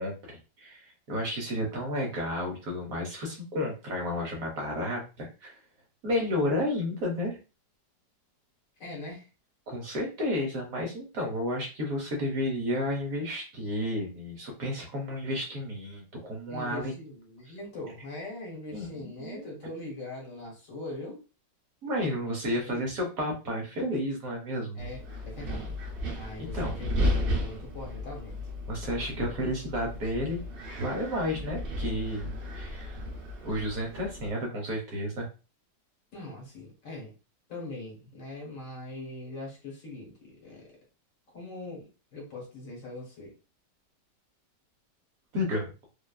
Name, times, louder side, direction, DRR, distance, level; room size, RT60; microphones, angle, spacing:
voice 1, 0.0-5.6 6.0-7.4 9.7-16.9 18.7-19.4 21.8-24.9 26.1-26.2 26.5-26.8 28.7-30.4 30.8-33.0 33.4-35.3 45.3-45.7, left 1 dB, 60° right, 1 dB, 1.1 m, -32 dB
voice 2, 8.8-9.3 16.5-21.2 22.6-22.9 24.8-25.8 26.1-28.4 36.1-37.1 37.5-40.7 41.3-43.3, left 2 dB, 55° left, -1 dB, 1.4 m, -41 dB
Wind, 24.8-34.3, left 1 dB, 90° right, 0.5 m, -34 dB
2.8 x 2.3 x 2.3 m, 0.32 s
omnidirectional pair, 1.9 m